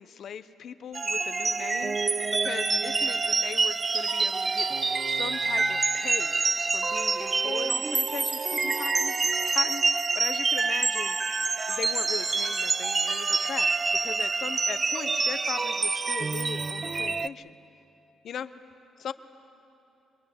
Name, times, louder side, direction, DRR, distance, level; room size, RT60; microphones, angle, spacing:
voice 1, 0.0-6.4 6.6-11.2 11.7-13.7 14.0-17.6 18.2-18.5 19.0-19.1, left 8 dB, 65° left, 12 dB, 0.9 m, -39 dB
sound 1, 0.9-17.3, right 4 dB, 30° right, 0.5 m, -27 dB
26.5 x 21.5 x 8.5 m, 2.9 s
cardioid pair, 90°, 0 cm